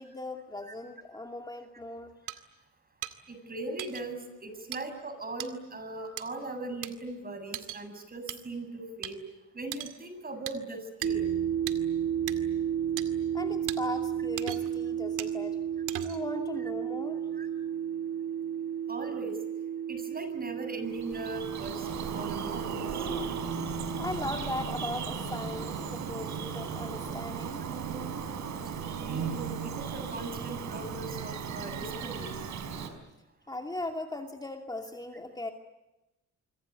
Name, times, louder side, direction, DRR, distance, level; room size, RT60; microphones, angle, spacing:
voice 1, 0.0-2.1 13.3-15.6 16.0-17.2 24.0-27.6 33.5-35.5, left 2 dB, 15° left, 3 dB, 2.6 m, -38 dB
sound 1, 2.3-2.4 3.0-3.1 3.8-4.0 4.7-4.8 5.4-5.5 6.2-6.3 6.8-6.9 7.5-7.8 8.3-8.4 9.0-9.1 9.7-10.0 10.5-10.6 11.0-11.1 11.7-11.8 12.3-12.4 13.0-13.1 13.7-13.8 14.4-14.8 15.2-15.3 15.9-16.3, right 12 dB, 90° right, 2.3 m, -37 dB
voice 2, 3.3-9.2 9.5-11.3 17.3-17.5 18.9-19.4 19.9-21.9 22.1-22.8 29.0-32.4, right 2 dB, 30° right, 8 dB, 7.7 m, -39 dB
sound 2, 11.0-24.2, right 9 dB, 50° right, 1.3 m, -33 dB
Bird vocalization bird call bird song, 20.8-32.9, right 6 dB, 70° right, 5.0 m, -36 dB
27.0 x 25.0 x 8.4 m, 0.99 s
cardioid pair, 90°, 30 cm